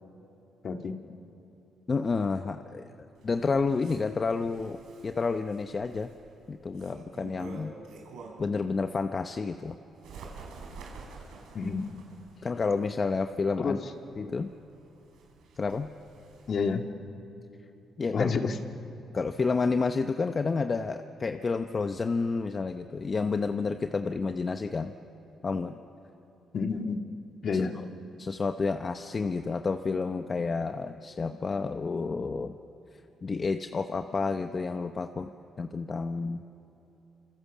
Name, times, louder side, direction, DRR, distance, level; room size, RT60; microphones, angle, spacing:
voice 1, 0.6-1.0 11.5-12.0 13.6-13.9 16.5-16.9 18.1-18.6 26.5-27.0 27.4-27.8, left 5 dB, 50° left, 5 dB, 2.0 m, -29 dB
voice 2, 1.9-2.9 3.2-4.8 5.0-6.1 6.5-7.7 8.4-9.8 12.4-13.8 14.2-14.5 15.6-15.9 18.0-18.3 19.1-24.9 25.4-25.8 27.5-27.7 28.2-32.6 33.2-35.3 35.6-36.4, left 4 dB, 35° left, 7 dB, 0.9 m, -30 dB
Bird, 3.2-8.6 9.0-16.7, right 4 dB, 85° right, 5.0 m, -49 dB
28.5 x 26.5 x 7.4 m, 2.9 s
cardioid pair, 90°, 0 cm